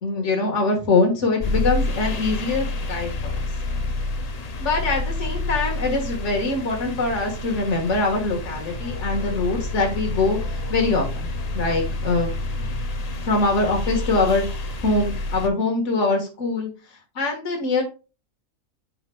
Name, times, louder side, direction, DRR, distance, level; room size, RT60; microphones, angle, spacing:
voice 1, 0.0-3.4 4.6-10.4 10.7-11.3 11.5-12.3 12.6-12.7 13.2-14.4 14.8-16.7 17.1-17.8, left 3 dB, 60° left, 2 dB, 1.9 m, -23 dB
sound 1, 1.4-15.5, left 2 dB, 40° left, 0.6 m, -28 dB
8.7 x 5.7 x 2.3 m, 0.31 s
omnidirectional pair, 1.4 m